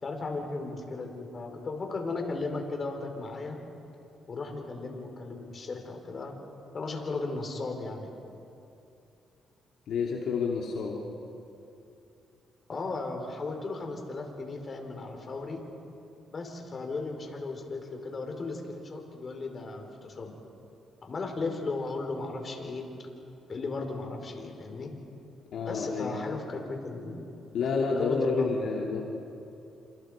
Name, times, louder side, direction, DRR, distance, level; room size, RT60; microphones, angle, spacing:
voice 1, 0.0-3.6 4.3-6.3 6.7-8.1 12.7-15.6 16.3-20.4 21.0-22.9 23.5-24.9 25.6-27.2 27.6-28.6 28.9-29.0, left 3 dB, 40° left, 3 dB, 4.7 m, -36 dB
voice 2, 9.9-11.0 25.5-26.1 27.5-29.0, left 4 dB, 70° left, -1 dB, 2.6 m, -29 dB
29.5 x 27.0 x 5.1 m, 2.7 s
cardioid pair, 90°, 0 cm